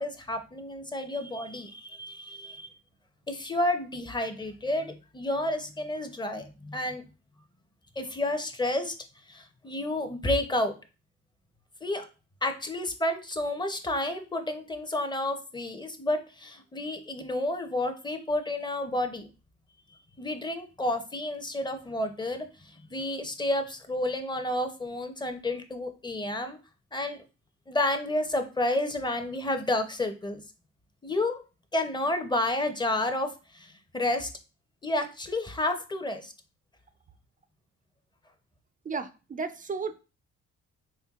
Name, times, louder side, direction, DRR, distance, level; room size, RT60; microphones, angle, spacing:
voice 1, 0.0-2.7 3.3-7.0 8.0-8.9 9.3-10.7 11.8-12.1 12.4-19.3 20.2-26.6 26.9-27.2 27.7-30.4 31.0-31.4 31.7-34.3 34.8-36.3, left 1 dB, 15° left, 0.6 m, -30 dB
voice 2, 38.9-40.0, right 4 dB, 30° right, 0.4 m, -34 dB
4.4 x 3.3 x 2.4 m
cardioid pair, 90°, 30 cm